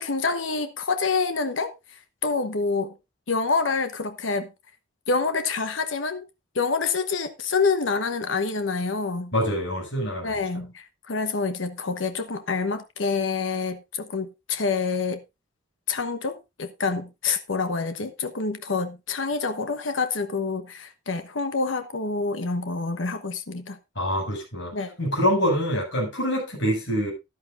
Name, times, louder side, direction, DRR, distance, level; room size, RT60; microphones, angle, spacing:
voice 1, 0.0-2.9 3.3-4.5 5.1-6.2 6.5-9.3 10.2-15.2 15.9-23.8 24.7-25.0, left 4 dB, 85° left, 1.1 m, -27 dB
voice 2, 9.3-10.4 24.0-24.7 25.0-27.1, equal, 70° left, 7.0 m, -25 dB
13.5 x 11.5 x 2.5 m
head